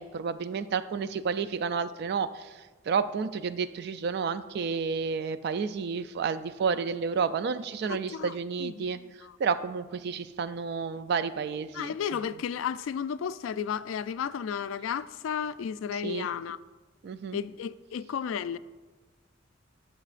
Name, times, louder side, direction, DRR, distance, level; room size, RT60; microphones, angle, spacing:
voice 1, 0.0-2.5 2.9-9.0 9.4-12.2 15.9-16.3 17.0-17.4, right 5 dB, 55° right, 0.3 m, -31 dB
voice 2, 7.8-8.3 8.6-9.3 11.7-16.6 17.3-18.6, left 7 dB, 90° left, 0.3 m, -33 dB
15.0 x 6.3 x 2.5 m
head